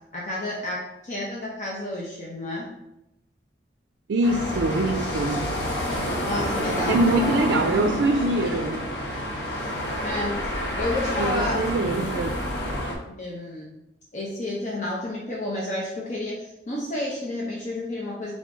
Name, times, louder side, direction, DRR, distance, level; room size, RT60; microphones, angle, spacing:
voice 1, 0.1-2.7 6.2-7.0 10.0-11.6 13.0-13.7 14.1-18.3, left 1 dB, 45° left, -4 dB, 0.7 m, -31 dB
voice 2, 4.1-5.5 6.9-8.9 11.2-12.4, right 2 dB, 90° right, 5 dB, 0.4 m, -24 dB
sound 1, 4.2-12.9, equal, 70° left, 1.0 m, -28 dB
3.7 x 3.6 x 3.7 m, 0.88 s
head